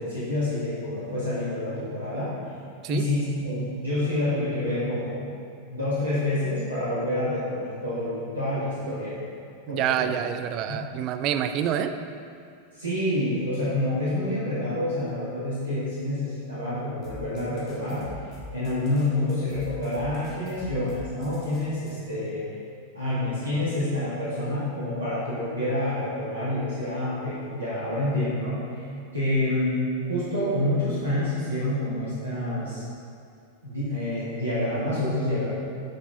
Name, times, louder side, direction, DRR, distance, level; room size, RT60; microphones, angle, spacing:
voice 1, 0.0-2.3 2.9-5.2 5.7-9.2 9.7-10.1 10.7-10.8 12.7-18.1 18.5-22.5 22.9-28.9 29.1-29.8 30.1-32.8 33.6-35.5, left 1 dB, 75° right, -11 dB, 2.2 m, -28 dB
voice 2, 9.7-11.9, right 9 dB, 40° right, 9 dB, 0.5 m, -27 dB
sound 1, 17.0-22.0, left 3 dB, 40° left, 1.8 m, -43 dB
11.5 x 6.1 x 3.8 m, 2.4 s
figure-of-eight pair, 90°, 0 cm